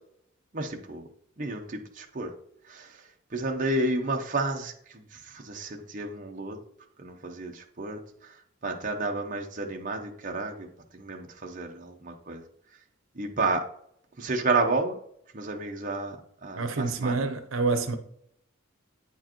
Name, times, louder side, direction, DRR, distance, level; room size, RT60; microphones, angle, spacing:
voice 1, 0.5-1.0 1.4-2.3 2.7-2.9 3.3-6.6 7.0-8.3 8.6-10.7 10.9-12.4 13.2-13.6 14.2-15.0 15.3-16.2 16.4-17.2, right 2 dB, 40° right, 0.7 m, -31 dB
voice 2, 16.5-18.0, right 3 dB, 80° right, 0.8 m, -27 dB
8.8 x 4.5 x 3.0 m
head